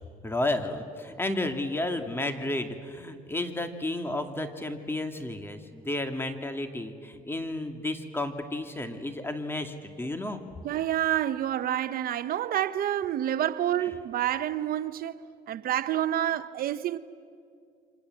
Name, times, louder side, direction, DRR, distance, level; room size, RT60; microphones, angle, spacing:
voice 1, 0.2-10.4 13.8-13.9, left 2 dB, 15° left, 2.4 m, -32 dB
voice 2, 10.6-15.2 15.5-17.0, right 11 dB, 60° right, 0.8 m, -28 dB
29.0 x 25.5 x 7.8 m
cardioid pair, 110°, 17 cm